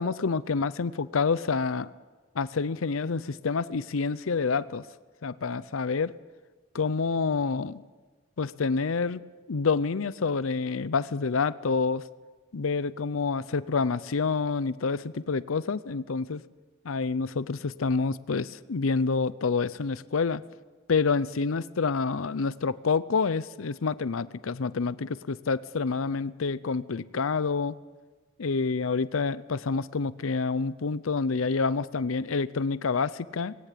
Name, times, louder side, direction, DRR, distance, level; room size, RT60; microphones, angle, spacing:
voice 1, 0.0-1.9 2.4-4.8 5.2-6.1 6.7-7.8 8.4-12.0 12.5-16.4 16.8-20.4 20.9-27.7 28.4-33.6, left 4 dB, 85° left, 17 dB, 0.6 m, -28 dB
20.0 x 18.5 x 8.5 m, 1.3 s
head